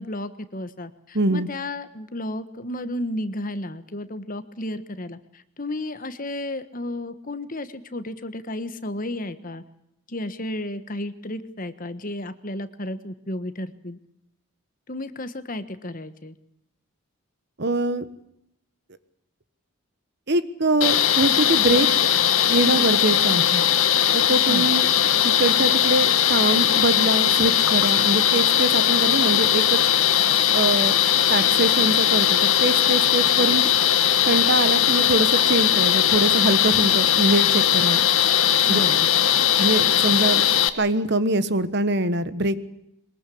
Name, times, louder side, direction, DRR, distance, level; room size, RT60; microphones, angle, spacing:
voice 1, 0.0-9.6 10.1-14.0 14.9-16.3 24.5-24.7 38.6-39.1, left 1 dB, 40° left, 12 dB, 1.4 m, -33 dB
voice 2, 1.1-1.5 17.6-18.0 20.3-21.9 22.5-23.6 24.1-24.9 25.2-29.8 30.5-31.0 31.3-33.7 34.2-38.0 38.7-38.8 39.6-40.4 40.8-42.6, right 2 dB, 50° right, 14 dB, 1.3 m, -23 dB
sound 1, 20.8-40.7, left 10 dB, 70° left, 1.4 m, -19 dB
23.0 x 20.5 x 8.5 m, 0.79 s
head